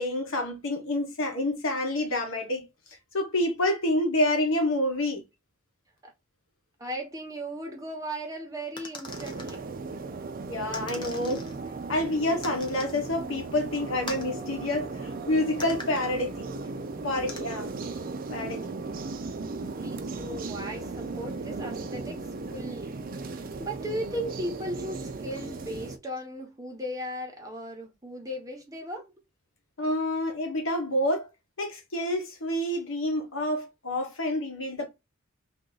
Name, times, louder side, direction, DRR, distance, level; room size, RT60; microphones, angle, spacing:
voice 1, 0.0-2.7 3.1-5.2 10.5-11.5 11.9-16.5 17.0-17.7 18.3-18.7 29.8-31.3 31.6-34.9, left 1 dB, 75° left, 1.1 m, -28 dB
voice 2, 6.8-9.6 19.8-22.2 22.5-23.0 23.3-29.1, equal, 15° right, 1.0 m, -37 dB
sound 1, 8.8-9.6 10.7-11.6 12.4-13.0 14.1-14.3 15.6-16.1 17.3-17.4, left 3 dB, 20° left, 0.7 m, -41 dB
sound 2, 9.1-26.0, right 3 dB, 45° right, 0.5 m, -36 dB
2.9 x 2.5 x 3.8 m
head